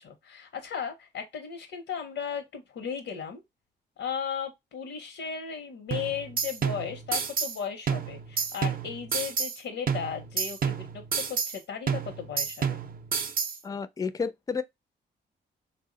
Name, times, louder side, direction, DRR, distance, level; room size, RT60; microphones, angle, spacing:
voice 1, 0.0-3.4 4.0-12.8, left 7 dB, 85° left, 0.7 m, -36 dB
sound 1, 5.9-7.6 7.9-9.6 9.9-11.6 11.9-13.6, right 6 dB, 45° right, 0.5 m, -30 dB
voice 2, 13.6-14.6, left 5 dB, 20° left, 0.4 m, -31 dB
3.4 x 2.0 x 3.7 m
cardioid pair, 85°, 20 cm